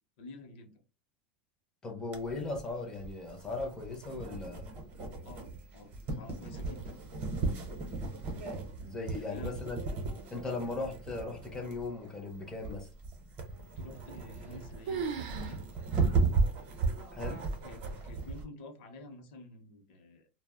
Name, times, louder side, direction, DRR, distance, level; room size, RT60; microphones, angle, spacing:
voice 1, 0.2-0.7 5.2-6.9 9.2-9.5 13.8-15.6 17.2-20.3, left 2 dB, 60° left, 0.7 m, -50 dB
voice 2, 1.8-4.7 8.8-9.8 10.3-12.9 17.1-17.4, left 3 dB, 10° left, 0.5 m, -38 dB
sound 1, 2.1-18.4, right 4 dB, 30° right, 0.7 m, -35 dB
sound 2, 14.1-14.6 14.9-15.6 15.9-16.0 16.7-16.8 17.5-17.9, right 6 dB, 70° right, 0.5 m, -37 dB
2.1 x 2.0 x 3.4 m
supercardioid pair, 155°, 6 cm